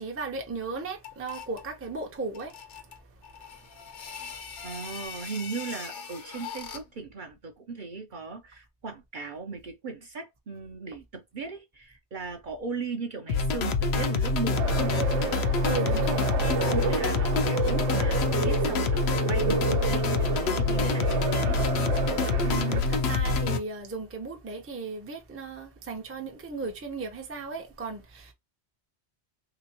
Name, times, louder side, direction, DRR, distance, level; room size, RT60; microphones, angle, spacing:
voice 1, 0.0-4.6 15.6-16.3 22.4-28.3, right 3 dB, 15° right, 0.5 m, -36 dB
sound 1, 1.0-1.7 2.3-7.0, left 6 dB, 90° left, 1.1 m, -41 dB
voice 2, 4.6-15.5 16.7-21.6, right 4 dB, 50° right, 0.7 m, -37 dB
sound 2, 13.3-23.6, left 4 dB, 70° left, 0.8 m, -26 dB
sound 3, 14.5-22.8, right 7 dB, 85° right, 1.0 m, -31 dB
3.3 x 2.9 x 2.8 m
omnidirectional pair, 1.2 m